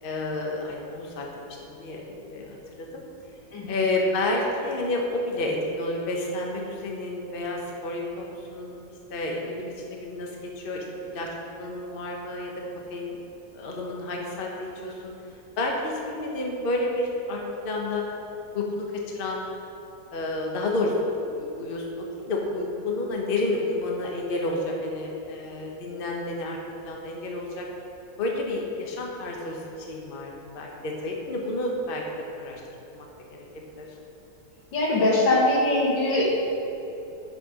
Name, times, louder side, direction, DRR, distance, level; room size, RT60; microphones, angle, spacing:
voice 1, 0.0-3.0 3.7-8.7 9.1-10.3 10.6-12.5 12.9-13.2 13.5-15.1 15.6-18.0 18.5-19.5 20.1-26.6 26.8-27.7 28.2-32.0 32.4-32.6 32.9-33.1 33.3-33.4 33.8-33.9, left 2 dB, 35° left, -1 dB, 1.0 m, -30 dB
voice 2, 34.7-36.4, left 2 dB, 80° left, -4 dB, 2.2 m, -22 dB
8.2 x 6.5 x 5.0 m, 2.9 s
omnidirectional pair, 2.0 m